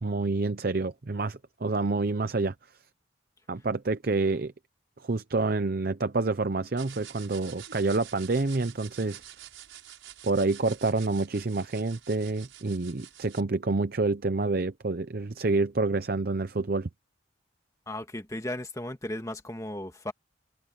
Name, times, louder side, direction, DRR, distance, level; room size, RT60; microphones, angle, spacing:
voice 1, 0.0-2.5 3.5-4.5 5.0-9.2 10.2-16.9, right 3 dB, 50° right, 0.7 m, -28 dB
sound 1, 6.8-13.4, right 11 dB, 85° right, 7.2 m, -48 dB
voice 2, 17.9-20.1, left 1 dB, 15° left, 2.0 m, -35 dB
open air
head